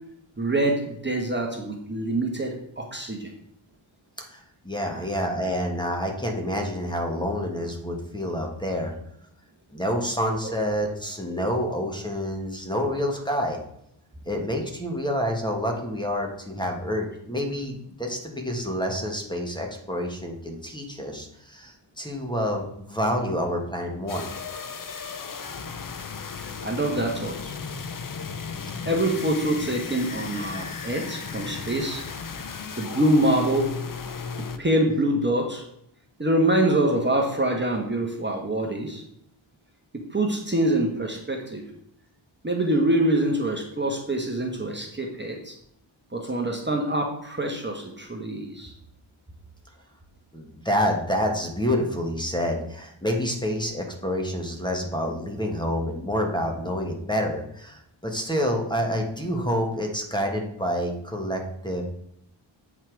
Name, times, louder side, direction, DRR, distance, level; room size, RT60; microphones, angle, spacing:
voice 1, 0.4-3.3 4.9-5.0 10.4-10.5 26.4-27.6 28.8-32.0 32.8-33.7 34.6-35.6 36.2-39.0 40.1-41.6 42.4-45.6 46.1-48.7, right 1 dB, 25° right, 1 dB, 1.2 m, -25 dB
voice 2, 4.2-8.9 9.7-13.6 14.2-24.3 28.6-28.7 50.3-61.8, equal, 10° left, 1 dB, 1.4 m, -28 dB
sound 1, 24.1-34.6, left 5 dB, 45° left, 0.7 m, -35 dB
8.3 x 5.7 x 4.6 m, 0.74 s
wide cardioid pair, 110°, 48 cm